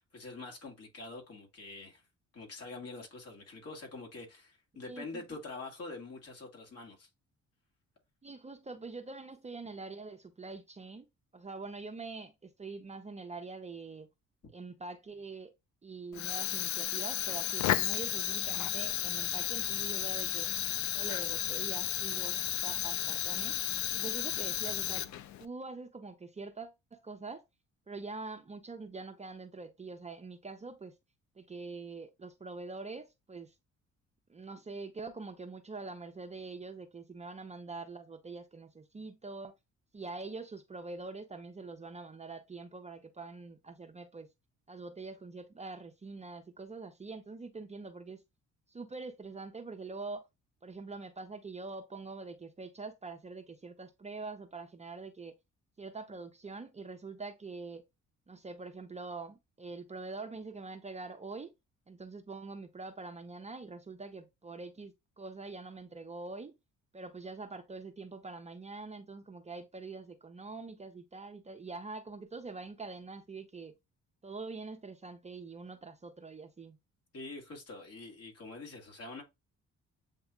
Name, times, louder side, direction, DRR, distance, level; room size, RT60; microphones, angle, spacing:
voice 1, 0.0-2.0 2.3-7.1 77.1-79.2, left 3 dB, 55° left, 2.1 m, -45 dB
voice 2, 4.9-5.2 8.2-11.1 11.3-14.1 14.5-15.5 15.8-20.5 20.9-23.6 23.9-25.1 25.4-27.4 27.9-30.9 31.4-33.5 34.3-39.5 39.9-44.3 44.7-48.2 48.7-50.3 50.6-55.3 55.8-57.9 58.3-61.5 61.9-66.6 66.9-73.8 74.2-76.8, right 3 dB, 20° right, 0.7 m, -44 dB
Fire, 16.1-25.5, left 12 dB, 70° left, 0.5 m, -33 dB
8.0 x 2.7 x 2.2 m
cardioid pair, 90°, 30 cm